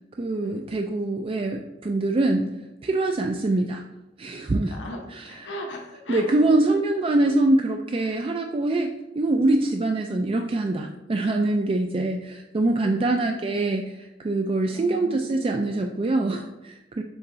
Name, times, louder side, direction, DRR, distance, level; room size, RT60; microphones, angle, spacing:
voice 1, 0.2-2.5 2.8-3.8 4.2-4.7 5.1-5.2 6.1-8.9 9.2-17.0, right 2 dB, 30° right, 4 dB, 0.3 m, -24 dB
voice 2, 4.7-6.4 6.7-6.8 8.0-8.2 12.8-13.6 14.7-15.8, equal, 75° left, 1 dB, 0.9 m, -38 dB
7.1 x 3.5 x 3.9 m, 1.0 s
head